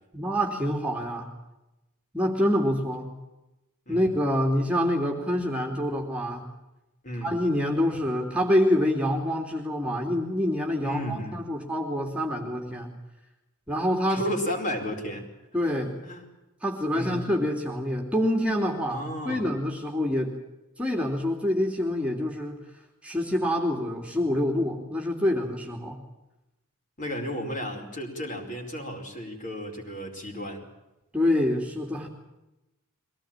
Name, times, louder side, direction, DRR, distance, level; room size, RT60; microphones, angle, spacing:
voice 1, 0.1-1.3 2.1-3.1 3.9-6.5 7.2-12.9 13.7-14.2 15.5-16.0 16.6-20.3 20.8-22.6 23.0-26.0 31.1-32.1, left 1 dB, 5° right, 1 dB, 2.9 m, -26 dB
voice 2, 10.8-11.4 14.1-15.2 16.0-16.3 16.9-17.2 18.9-19.5 27.0-30.6, equal, 35° left, 3 dB, 4.8 m, -33 dB
23.5 x 18.0 x 8.9 m, 0.97 s
head